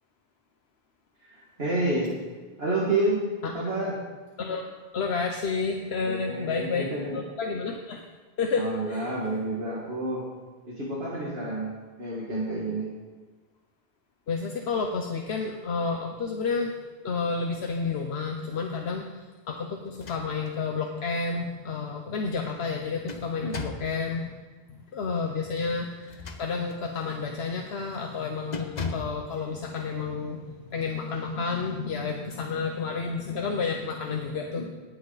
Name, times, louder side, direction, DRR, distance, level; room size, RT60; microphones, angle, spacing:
voice 1, 1.2-2.1 2.6-3.3 3.5-4.0 6.0-7.2 8.6-10.2 10.7-12.9 23.4-23.6 34.5-34.6, right 2 dB, 70° right, -5 dB, 2.3 m, -29 dB
voice 2, 4.4-6.9 7.1-8.1 8.4-9.1 14.3-24.4 24.7-34.6, left 4 dB, 80° left, 2 dB, 1.1 m, -30 dB
sound 1, 19.9-20.6 21.1-21.2 22.6-24.0 26.0-26.9 27.4-27.6 27.9-28.2 28.5-29.2, left 4 dB, 45° left, 1.0 m, -37 dB
18.5 x 7.8 x 4.1 m, 1.4 s
omnidirectional pair, 1.0 m